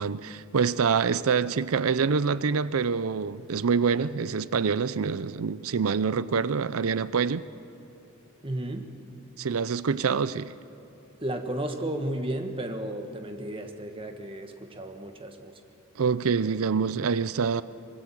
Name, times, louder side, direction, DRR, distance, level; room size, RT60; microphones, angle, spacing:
voice 1, 0.0-7.5 9.4-10.5 16.0-17.6, right 5 dB, 75° right, 0.5 m, -26 dB
voice 2, 8.4-8.9 11.2-15.5, right 1 dB, 25° right, 1.5 m, -33 dB
24.5 x 22.0 x 7.6 m
head